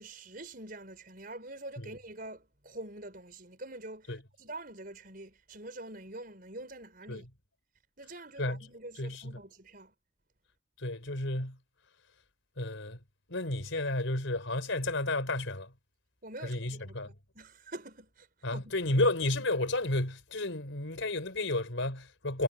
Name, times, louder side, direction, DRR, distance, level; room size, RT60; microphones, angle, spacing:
voice 1, 0.0-7.3 8.0-9.9 16.2-18.7 19.0-19.1, right 2 dB, 45° right, 5.3 m, -46 dB
voice 2, 9.0-9.3 10.8-11.6 12.6-13.0 13.3-15.7 16.4-17.1 18.4-22.4, left 2 dB, 75° left, 4.1 m, -32 dB
head